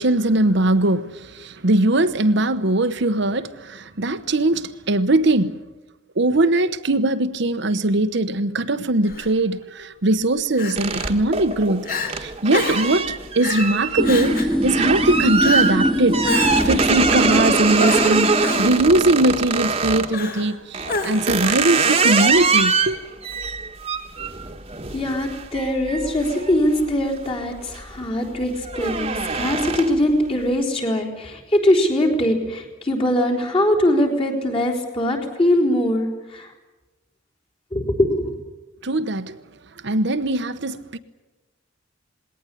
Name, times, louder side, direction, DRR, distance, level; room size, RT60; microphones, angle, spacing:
voice 1, 0.0-5.6 6.2-11.9 12.2-16.2 16.6-23.0 38.8-39.4 39.8-41.0, right 2 dB, 60° right, 1.0 m, -20 dB
Crying sobbing, 9.1-9.3 10.6-11.1 11.5-11.6 11.8-12.1 12.5-12.9 13.4-13.7 14.0-14.6 15.4-15.8 16.2-16.8 17.8-18.7 20.1-20.5 20.9-21.4, left 3 dB, 45° left, 3.1 m, -28 dB
sound 1, 10.8-20.1 20.7-27.2 27.6-28.0 28.3-30.1, right 4 dB, 30° right, 1.5 m, -23 dB
sound 2, 14.0-19.4, equal, ahead, 1.8 m, -23 dB
voice 2, 24.9-36.5 37.7-38.4, left 1 dB, 30° left, 4.0 m, -21 dB
20.0 x 18.5 x 9.9 m
head